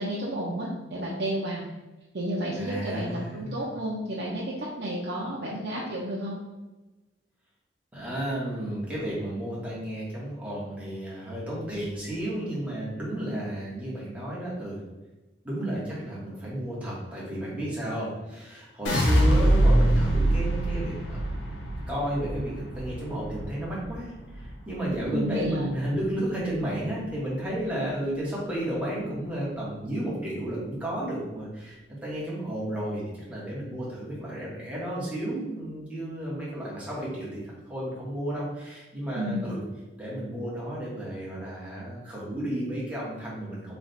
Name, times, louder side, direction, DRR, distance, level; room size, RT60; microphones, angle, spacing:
voice 1, 0.0-1.6 2.1-6.4 25.0-25.7 39.1-39.5, right 1 dB, 60° right, -5 dB, 0.6 m, -31 dB
voice 2, 2.6-3.6 7.9-14.8 15.4-21.2 21.9-39.6 40.0-43.8, right 1 dB, 10° right, -7 dB, 1.2 m, -32 dB
sound 1, 18.8-25.0 25.4-26.0, right 1 dB, 80° left, 0.8 m, -24 dB
3.3 x 2.4 x 4.1 m, 1.1 s
head